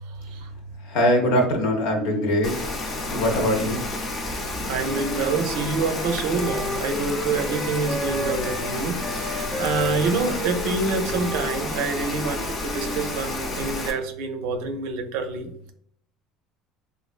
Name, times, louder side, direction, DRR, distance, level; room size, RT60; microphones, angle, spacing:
voice 1, 0.1-0.5 4.7-15.7, right 4 dB, 80° right, 6 dB, 0.5 m, -27 dB
voice 2, 0.8-2.7 3.1-3.8, equal, 80° left, 2 dB, 0.8 m, -22 dB
Rain, 2.4-13.9, left 2 dB, 40° left, 0.6 m, -30 dB
Wind instrument woodwind instrument, 4.8-8.7 9.0-13.2, equal, 15° right, 0.5 m, -34 dB
3.2 x 2.4 x 2.4 m, 0.67 s
supercardioid pair, 110°, 0 cm